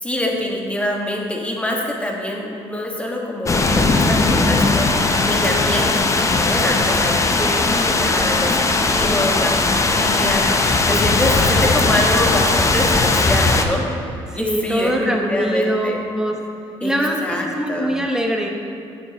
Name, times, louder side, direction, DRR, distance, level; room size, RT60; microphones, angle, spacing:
voice 1, 0.0-16.0 16.8-16.9 17.2-18.0, left 1 dB, 10° left, 0 dB, 1.4 m, -25 dB
sound 1, 3.5-13.6, left 3 dB, 25° left, 0.7 m, -18 dB
voice 2, 10.9-11.7 14.3-16.4 16.8-18.5, equal, 5° right, 1 dB, 1.2 m, -23 dB
10.0 x 7.2 x 2.9 m, 2.6 s
supercardioid pair, 75°, 11 cm